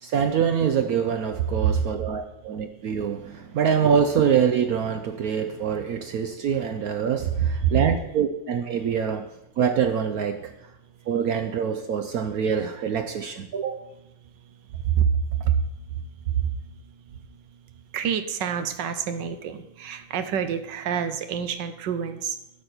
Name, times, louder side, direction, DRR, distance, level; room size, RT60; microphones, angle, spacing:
voice 1, 0.0-10.5 11.1-13.8, right 7 dB, 85° right, 7 dB, 0.8 m, -25 dB
voice 2, 7.4-7.7 15.0-15.1 17.9-22.3, right 8 dB, 65° right, 9 dB, 1.3 m, -27 dB
12.0 x 4.4 x 8.0 m, 0.86 s
omnidirectional pair, 2.3 m